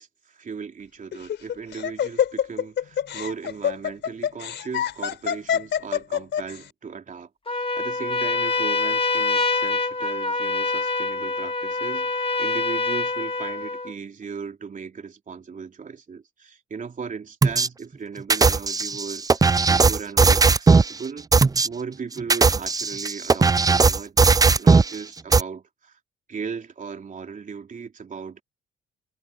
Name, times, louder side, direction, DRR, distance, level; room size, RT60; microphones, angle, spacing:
voice 1, 0.0-21.3 21.6-24.3 24.6-26.0 26.3-28.4, right 5 dB, 40° right, 3.4 m, -37 dB
Laughter, 1.1-6.6, left 9 dB, 65° left, 4.0 m, -25 dB
Trumpet, 7.5-13.9, left 3 dB, 30° left, 2.5 m, -25 dB
sound 1, 17.4-17.7 18.3-20.9 21.3-21.7 22.2-24.9 25.3-25.4, right 4 dB, 20° right, 0.5 m, -17 dB
cardioid pair, 90°, 20 cm